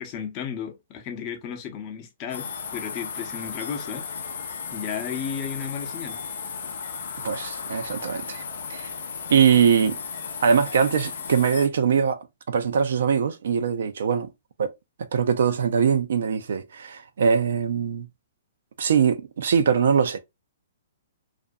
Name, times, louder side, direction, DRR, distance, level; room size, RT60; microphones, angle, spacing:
voice 1, 0.0-4.1 4.7-6.2, left 8 dB, 30° left, 0.6 m, -34 dB
sound 1, 2.3-11.7, left 6 dB, 75° left, 0.5 m, -35 dB
voice 2, 7.2-8.4 8.7-8.9 9.3-10.0 10.4-12.2 12.5-14.3 14.6-14.7 15.1-18.1 18.8-20.2, right 7 dB, 70° right, 0.4 m, -22 dB
2.5 x 2.2 x 2.5 m
hypercardioid pair, 145°, 0 cm